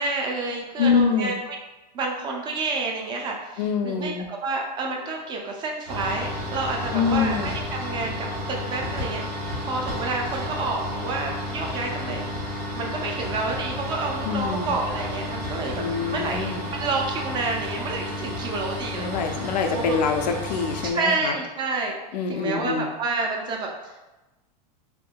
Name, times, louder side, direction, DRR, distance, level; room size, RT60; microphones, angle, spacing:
voice 1, 0.0-1.4 1.9-12.3 12.7-19.2 19.7-20.0 20.9-22.0 22.3-23.9, right 3 dB, 20° right, 1 dB, 0.4 m, -29 dB
voice 2, 0.8-1.4 3.6-4.3 6.9-7.5 14.2-14.7 15.7-16.6 18.9-21.4 22.1-22.9, left 5 dB, 90° left, 4 dB, 0.5 m, -25 dB
sound 1, 5.9-20.9, left 1 dB, 70° right, 1.0 m, -32 dB
3.5 x 2.6 x 2.2 m, 1.1 s
supercardioid pair, 145°, 21 cm